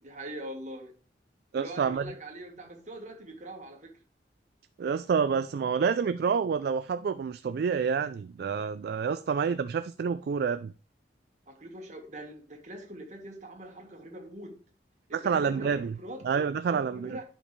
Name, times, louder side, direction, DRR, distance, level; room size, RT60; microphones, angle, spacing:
voice 1, 0.0-0.9 1.5-3.9 9.1-9.3 11.5-14.5 15.1-16.3 16.6-17.2, right 1 dB, 40° right, 1.5 m, -43 dB
voice 2, 1.5-2.0 4.8-10.7 15.1-15.9 16.2-17.2, right 6 dB, 60° right, 0.3 m, -28 dB
11.0 x 5.3 x 3.2 m
head